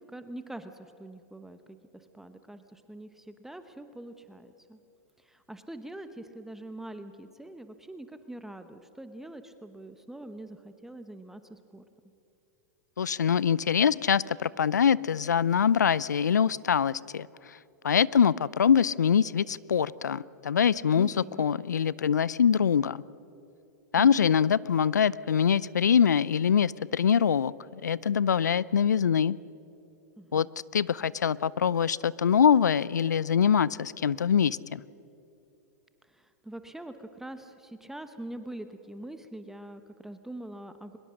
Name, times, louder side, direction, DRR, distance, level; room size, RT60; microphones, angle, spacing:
voice 1, 0.0-4.8 5.2-11.8 21.0-21.4 24.0-24.3 30.2-30.5 36.1-41.0, right 1 dB, 5° right, 9 dB, 1.0 m, -44 dB
voice 2, 13.0-17.6 17.8-23.0 23.9-29.4 30.3-30.5 30.7-34.8, left 7 dB, 85° left, 22 dB, 0.5 m, -24 dB
23.5 x 21.0 x 6.4 m, 2.8 s
hypercardioid pair, 100°, 9 cm